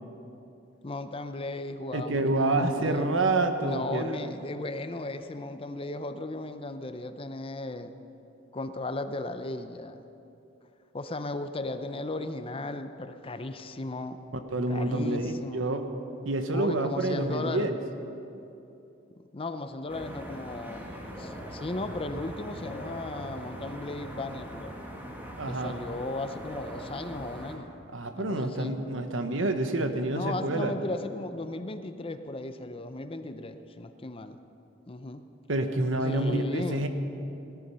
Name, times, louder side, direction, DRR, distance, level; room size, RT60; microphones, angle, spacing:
voice 1, 0.8-3.1 3.6-7.9 8.5-10.0 10.9-14.2 14.7-15.6 16.5-17.7 19.3-20.9 21.2-24.7 25.5-27.7 28.2-28.8 30.1-34.4 34.9-35.2 36.0-36.9, left 2 dB, 30° left, 9 dB, 0.6 m, -36 dB
voice 2, 1.9-4.2 14.5-15.8 16.2-17.8 25.4-25.8 27.9-30.7 35.5-36.9, right 2 dB, 85° right, 7 dB, 1.1 m, -28 dB
sound 1, 19.9-27.6, equal, 10° right, 1.7 m, -41 dB
17.5 x 13.0 x 5.6 m, 2.9 s
head